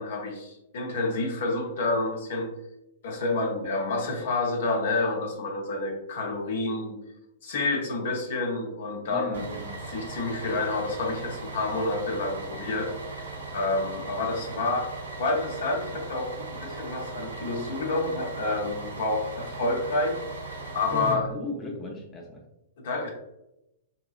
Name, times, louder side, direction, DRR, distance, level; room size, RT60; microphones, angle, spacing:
voice 1, 0.0-2.5 3.0-7.0 7.4-9.5 9.9-12.9 13.2-14.9 15.2-20.2 20.7-21.3 22.8-23.1, left 2 dB, 60° left, 1 dB, 0.8 m, -29 dB
voice 2, 9.1-9.8 20.9-22.4, left 1 dB, 20° left, 0 dB, 0.6 m, -36 dB
Bus, 9.3-21.1, right 3 dB, 80° right, 0.8 m, -38 dB
3.7 x 2.9 x 2.3 m, 0.88 s
figure-of-eight pair, 110°, 0 cm